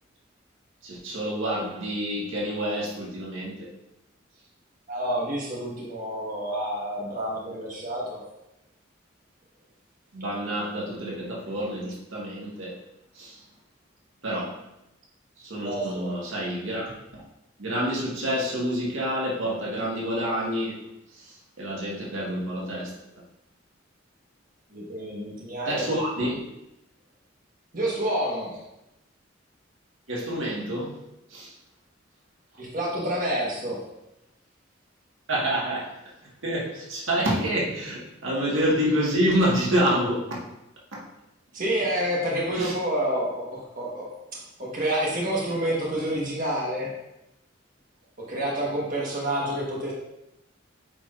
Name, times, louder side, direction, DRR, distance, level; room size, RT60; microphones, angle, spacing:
voice 1, 0.8-3.7 10.1-12.8 13.1-13.4 14.2-14.6 15.4-17.2 17.6-20.9 21.1-23.0 25.7-26.4 30.1-31.0 31.3-31.6 35.3-36.0 36.2-40.5 40.9-41.1 42.5-42.7, equal, 90° right, -4 dB, 1.7 m, -28 dB
voice 2, 4.9-8.2 15.6-16.2 24.7-25.9 27.7-28.6 32.6-33.8 41.5-44.1 44.6-46.9 48.3-49.9, right 1 dB, 45° right, -4 dB, 1.4 m, -28 dB
8.3 x 4.8 x 2.5 m, 0.88 s
head